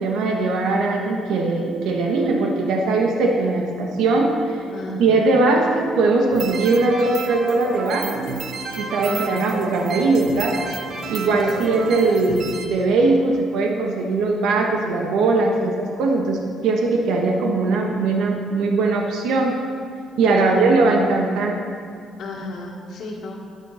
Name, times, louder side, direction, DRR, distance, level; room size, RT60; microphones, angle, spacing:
voice 1, 0.0-4.6 5.0-8.3 8.7-10.6 11.1-19.6 20.2-21.6, right 3 dB, 85° right, 1 dB, 1.6 m, -20 dB
voice 2, 4.7-5.3 9.1-9.5 11.4-11.8 20.4-21.0 22.2-23.5, left 2 dB, 60° left, -6 dB, 1.8 m, -33 dB
sound 1, 6.3-12.7, right 4 dB, 60° right, 1.3 m, -31 dB
12.0 x 9.9 x 5.8 m, 2.2 s
cardioid pair, 145°, 0 cm